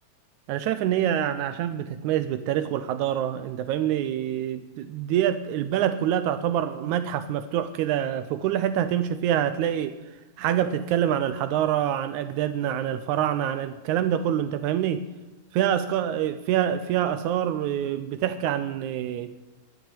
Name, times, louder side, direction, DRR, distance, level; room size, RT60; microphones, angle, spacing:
voice 1, 0.5-9.9 10.4-15.0 15.5-19.3, right 10 dB, 80° right, 11 dB, 1.9 m, -26 dB
11.0 x 9.6 x 8.4 m, 1.2 s
omnidirectional pair, 3.5 m